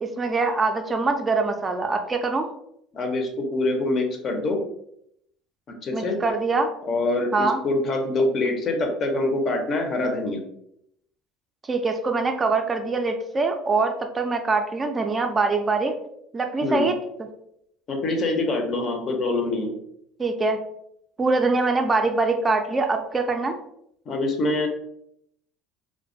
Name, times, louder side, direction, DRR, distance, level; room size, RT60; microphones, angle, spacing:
voice 1, 0.0-2.5 5.9-6.7 7.3-7.6 11.6-15.9 16.3-16.9 20.2-20.6 21.2-23.5, right 3 dB, 25° right, 5 dB, 0.3 m, -23 dB
voice 2, 2.9-4.6 5.8-6.2 6.8-10.4 16.6-16.9 17.9-19.7 24.1-24.7, left 2 dB, 45° left, 3 dB, 0.5 m, -25 dB
2.3 x 2.1 x 2.5 m, 0.75 s
supercardioid pair, 80°, 0 cm